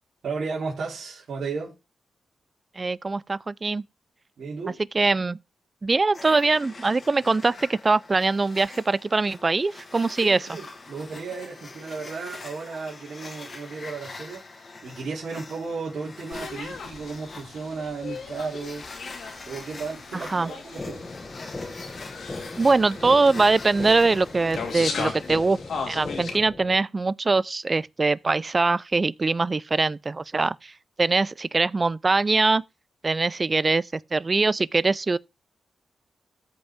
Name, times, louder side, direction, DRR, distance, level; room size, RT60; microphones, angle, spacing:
voice 1, 0.2-1.8 4.4-4.8 10.2-18.9 19.5-21.0, right 4 dB, 70° right, 3.4 m, -34 dB
voice 2, 2.8-3.8 4.9-5.4 5.8-10.4 20.1-20.5 22.6-25.6 25.9-30.7 31.0-32.6 33.0-35.2, right 3 dB, 30° right, 0.4 m, -22 dB
sound 1, 6.1-25.5, left 3 dB, 45° left, 1.9 m, -44 dB
sound 2, 16.3-26.4, left 5 dB, 75° left, 2.4 m, -37 dB
sound 3, 20.8-26.8, left 2 dB, 25° left, 1.4 m, -38 dB
14.0 x 5.2 x 3.6 m
cardioid pair, 85°, 0 cm